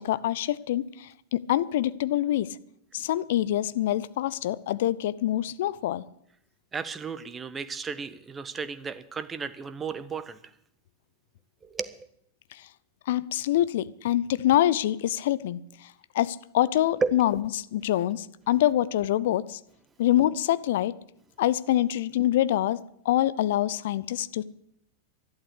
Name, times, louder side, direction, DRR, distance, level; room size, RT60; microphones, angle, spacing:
voice 1, 0.0-2.5 2.9-6.0 13.1-15.6 16.1-19.6 20.0-20.9 21.4-24.4, left 13 dB, 55° left, 17 dB, 0.6 m, -25 dB
voice 2, 6.7-10.4 11.7-11.9 17.0-17.1, right 5 dB, 20° right, 13 dB, 1.1 m, -33 dB
12.0 x 11.5 x 8.3 m, 0.73 s
figure-of-eight pair, 90°, 0 cm